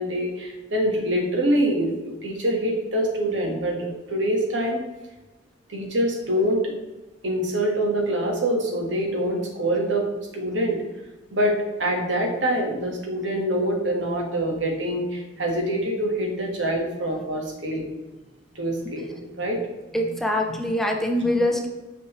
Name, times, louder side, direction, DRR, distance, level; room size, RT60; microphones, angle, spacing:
voice 1, 0.0-4.8 5.7-6.7 7.2-10.1 10.3-10.8 11.3-17.9 18.5-19.6 20.5-20.6 21.2-21.3, right 1 dB, 80° right, 1 dB, 1.5 m, -25 dB
voice 2, 19.9-21.7, left 1 dB, ahead, 0 dB, 0.7 m, -23 dB
6.1 x 6.0 x 3.2 m, 1.1 s
head